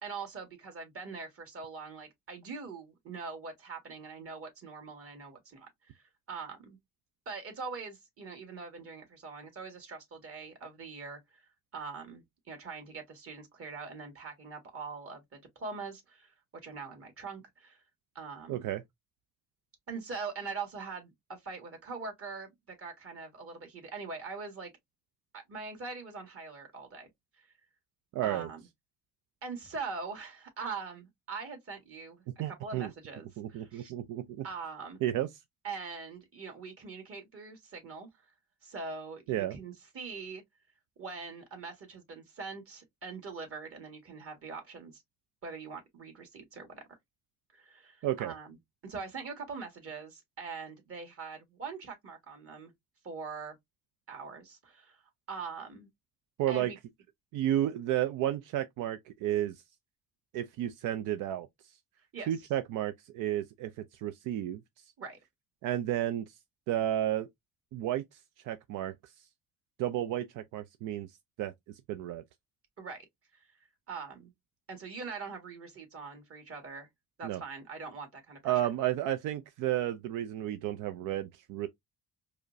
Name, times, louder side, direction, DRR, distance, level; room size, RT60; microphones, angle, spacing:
voice 1, 0.0-6.8 7.3-11.4 11.7-16.3 16.6-17.8 18.2-18.7 19.9-24.7 25.3-27.1 27.4-27.5 28.2-28.6 29.4-33.9 34.4-35.0 35.6-38.3 38.6-40.4 41.0-45.0 45.4-46.8 47.5-48.6 48.8-52.7 53.0-53.6 54.1-55.0 55.3-55.9 56.5-56.8 62.1-62.3 65.0-65.2 72.8-73.1 73.3-74.3 74.7-76.9 77.2-78.5, right 4 dB, 50° right, 1.7 m, -43 dB
voice 2, 18.5-18.8 28.1-28.5 32.4-32.9 33.4-34.4 35.0-35.3 39.3-39.5 48.0-48.3 56.4-56.7 57.3-59.6 60.3-61.5 62.3-63.7 64.0-64.6 65.6-66.3 66.7-67.3 67.7-68.2 68.4-69.1 69.8-71.1 71.4-71.5 71.9-72.2 77.2-77.4 78.4-81.7, right 12 dB, 90° right, 0.5 m, -32 dB
4.8 x 2.1 x 2.5 m
cardioid pair, 90°, 30 cm